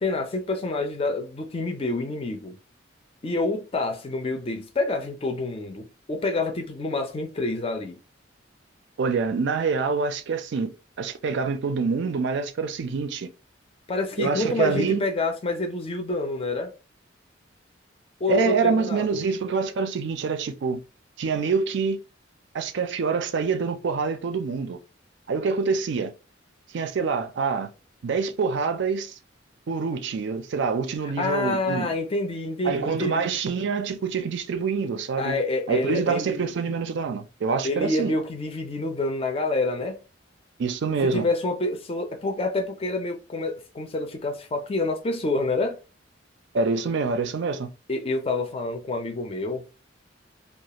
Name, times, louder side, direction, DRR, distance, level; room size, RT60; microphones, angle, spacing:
voice 1, 0.0-2.6 3.2-8.0 13.9-16.7 18.2-19.2 31.0-33.4 35.2-36.5 37.6-40.0 41.0-45.8 47.9-49.7, left 2 dB, 30° left, 0.5 m, -27 dB
voice 2, 9.0-13.3 14.2-15.0 18.3-20.8 21.2-22.0 22.5-24.8 25.3-26.1 26.7-27.7 28.0-29.2 29.7-31.9 32.6-35.4 35.7-38.1 40.6-41.2 46.5-47.7, right 5 dB, 65° right, 0.4 m, -26 dB
2.4 x 2.3 x 2.8 m
head